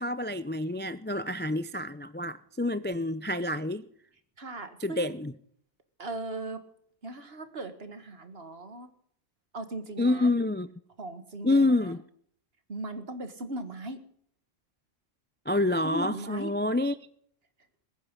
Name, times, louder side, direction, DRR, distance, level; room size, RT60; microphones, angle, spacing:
voice 1, 0.0-3.8 4.8-5.3 10.0-10.7 11.4-12.0 15.5-17.0, left 2 dB, 15° left, 0.3 m, -27 dB
voice 2, 4.4-5.1 6.0-6.6 7.0-8.9 9.5-10.3 11.0-11.9 12.7-14.0 15.8-16.5, right 2 dB, 50° right, 2.0 m, -38 dB
21.5 x 9.4 x 5.4 m
omnidirectional pair, 1.3 m